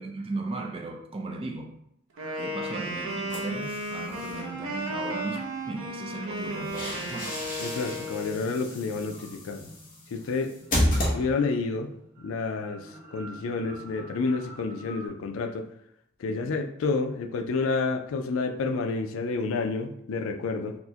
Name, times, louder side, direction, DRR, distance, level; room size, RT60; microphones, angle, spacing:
voice 1, 0.0-1.7 2.4-7.4 16.3-16.5, right 2 dB, 25° right, 0.4 m, -36 dB
sound 1, 2.1-15.1, equal, 45° right, 1.0 m, -50 dB
Wind instrument woodwind instrument, 2.2-8.4, right 1 dB, 70° right, 0.6 m, -34 dB
sound 2, 3.3-4.4 6.3-11.7, left 1 dB, 40° left, 1.0 m, -32 dB
voice 2, 7.6-9.7 10.1-10.5 11.1-11.9 12.2-15.7 16.2-20.8, left 4 dB, 70° left, 0.4 m, -29 dB
4.4 x 2.1 x 2.8 m
head